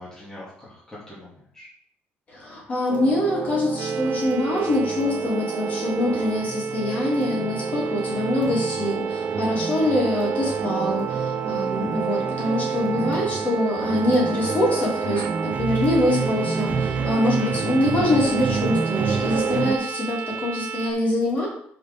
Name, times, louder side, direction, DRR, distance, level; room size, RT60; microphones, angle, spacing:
voice 1, 0.0-1.7 8.1-8.2 17.2-17.6, left 1 dB, 15° left, -7 dB, 2.5 m, -42 dB
voice 2, 2.3-21.5, left 1 dB, 35° left, -3 dB, 3.2 m, -24 dB
sound 1, 2.9-19.8, right 5 dB, 40° right, 0.8 m, -28 dB
sound 2, 3.8-20.9, right 6 dB, 90° right, 0.6 m, -32 dB
5.9 x 5.6 x 5.3 m, 0.64 s
cardioid pair, 145°, 4 cm